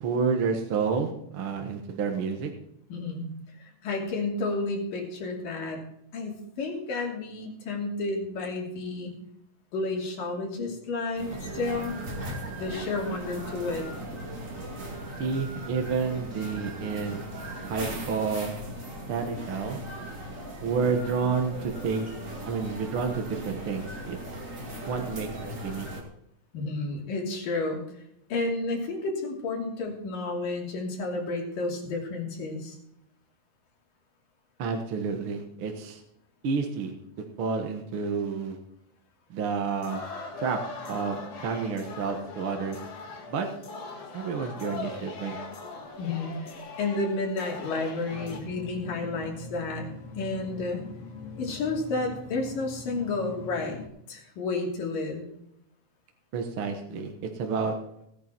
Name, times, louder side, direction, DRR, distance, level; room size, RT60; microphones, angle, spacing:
voice 1, 0.0-2.5 15.2-17.3 17.6-18.5 19.1-19.8 20.6-22.1 22.4-24.2 24.9-25.9 34.6-36.0 36.4-36.9 37.4-38.6 39.3-40.0 40.4-40.6 40.9-42.8 43.3-43.5 44.1-45.4 56.3-57.7, right 5 dB, 55° right, 4 dB, 1.7 m, -30 dB
voice 2, 2.9-3.3 3.6-5.8 6.1-9.1 9.7-12.0 12.5-13.8 26.5-27.8 28.3-32.8 46.0-49.9 50.1-50.9 51.4-55.3, left 3 dB, 80° left, -1 dB, 4.4 m, -31 dB
sound 1, 11.2-26.0, right 1 dB, 25° right, 2.4 m, -38 dB
sound 2, 39.7-48.4, left 3 dB, 65° left, 3.3 m, -40 dB
sound 3, 48.1-53.9, left 3 dB, 50° left, 2.7 m, -43 dB
17.0 x 9.8 x 4.5 m, 0.76 s
omnidirectional pair, 3.8 m